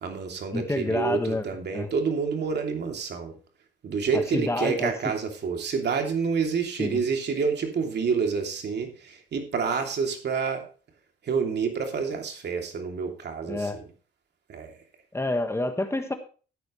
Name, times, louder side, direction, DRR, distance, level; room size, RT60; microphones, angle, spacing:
voice 1, 0.0-3.3 3.8-10.6 11.3-13.7 14.5-14.7, right 5 dB, 60° right, 4 dB, 2.9 m, -28 dB
voice 2, 0.5-1.5 1.7-1.9 4.1-4.9 6.8-7.0 13.5-13.8 15.1-16.1, left 2 dB, 15° left, 7 dB, 1.5 m, -28 dB
13.5 x 9.5 x 3.2 m, 0.37 s
cardioid pair, 90°, 20 cm